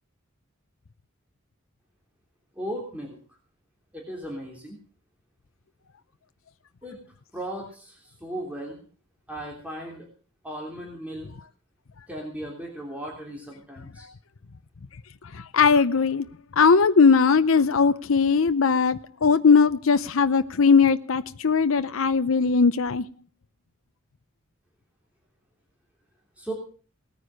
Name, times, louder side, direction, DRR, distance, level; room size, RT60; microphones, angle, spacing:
voice 1, 2.5-3.2 3.9-4.8 6.8-7.0 7.3-8.8 9.3-10.0 10.4-11.3 12.1-14.1 26.4-26.5, right 1 dB, 5° right, 3.3 m, -36 dB
voice 2, 15.3-16.3 16.6-23.1, left 5 dB, 75° left, 0.7 m, -19 dB
18.5 x 9.7 x 6.5 m
head